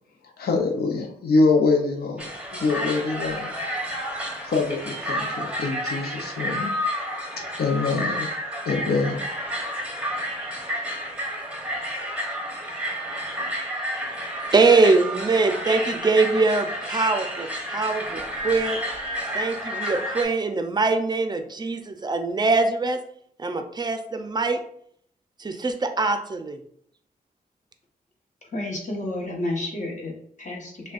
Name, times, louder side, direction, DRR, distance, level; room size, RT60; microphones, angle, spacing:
voice 1, 0.4-2.3 2.6-3.5 4.4-6.7 7.6-8.3 8.7-9.2, left 3 dB, 75° left, 2 dB, 0.6 m, -24 dB
sound 1, 2.2-20.2, equal, 5° right, 0.9 m, -30 dB
voice 2, 14.5-18.8 19.3-23.0 23.4-24.6 25.4-26.6, right 3 dB, 25° right, 6 dB, 0.5 m, -22 dB
voice 3, 28.5-30.9, left 1 dB, 50° left, -1 dB, 1.1 m, -31 dB
6.0 x 2.2 x 2.4 m, 0.67 s
wide cardioid pair, 95°, 16 cm